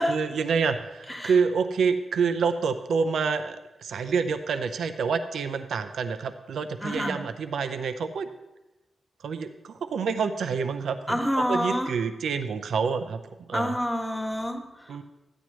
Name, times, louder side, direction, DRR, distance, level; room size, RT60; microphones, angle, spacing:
voice 1, 0.1-3.6 3.8-8.3 9.2-13.2 13.5-13.7 14.9-15.0, right 5 dB, 85° right, 9 dB, 0.5 m, -27 dB
voice 2, 6.8-7.2 11.1-11.9 13.5-15.0, equal, 10° left, 2 dB, 1.3 m, -28 dB
13.5 x 9.9 x 3.1 m, 1.0 s
wide cardioid pair, 105°, 0 cm